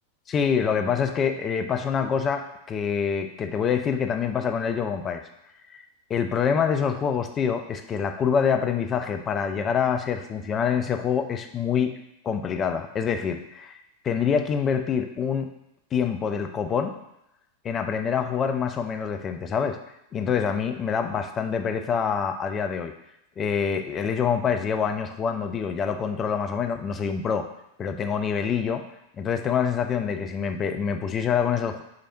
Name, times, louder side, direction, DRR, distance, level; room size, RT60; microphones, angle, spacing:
voice 1, 0.3-5.2 5.7-5.8 6.1-12.0 12.2-13.8 14.0-15.5 15.9-16.9 17.6-19.8 20.1-22.9 23.4-27.5 27.8-28.9 29.2-31.8, left 7 dB, 25° left, 7 dB, 0.4 m, -26 dB
4.9 x 3.2 x 2.6 m, 0.84 s
figure-of-eight pair, 90°, 0 cm